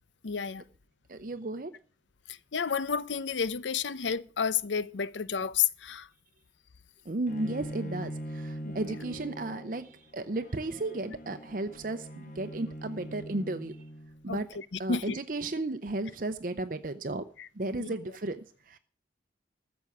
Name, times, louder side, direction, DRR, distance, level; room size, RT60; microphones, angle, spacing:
voice 1, 0.2-0.6 2.3-6.1 8.6-8.7 14.3-15.2 17.4-17.5 17.8-17.9, left 6 dB, 85° left, 0.7 m, -31 dB
voice 2, 1.1-1.7 7.1-13.8 14.2-14.5 14.8-17.3 17.5-18.8, right 2 dB, 50° right, 0.7 m, -34 dB
Bowed string instrument, 7.3-14.3, right 1 dB, 45° left, 1.8 m, -42 dB
14.0 x 7.1 x 8.4 m
head